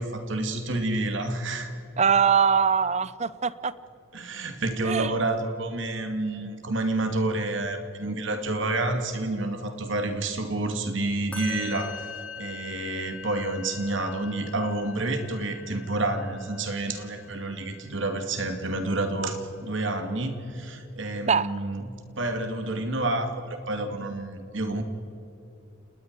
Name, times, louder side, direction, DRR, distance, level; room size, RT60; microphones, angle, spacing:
voice 1, 0.0-1.7 4.1-12.1 12.4-24.8, right 2 dB, 65° right, 6 dB, 2.4 m, -29 dB
voice 2, 2.0-3.7 4.8-5.1 21.3-21.5, right 6 dB, 35° right, 17 dB, 0.6 m, -22 dB
Musical instrument, 11.3-18.6, left 5 dB, 5° left, 4.2 m, -43 dB
29.5 x 20.0 x 4.8 m, 2.9 s
head